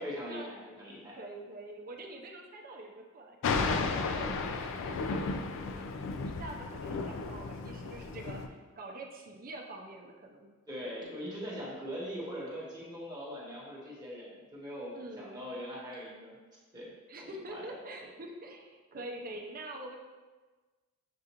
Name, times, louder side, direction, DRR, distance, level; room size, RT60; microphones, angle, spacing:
voice 1, 0.0-1.1 10.7-16.3 16.7-16.9 17.3-17.6, equal, 20° right, -6 dB, 0.9 m, -41 dB
voice 2, 1.2-10.5 14.9-15.4 17.1-20.0, right 1 dB, 40° right, 1 dB, 0.5 m, -46 dB
Thunder, 3.4-8.5, left 4 dB, 60° left, 0.3 m, -34 dB
6.8 x 2.4 x 2.9 m, 1.3 s
head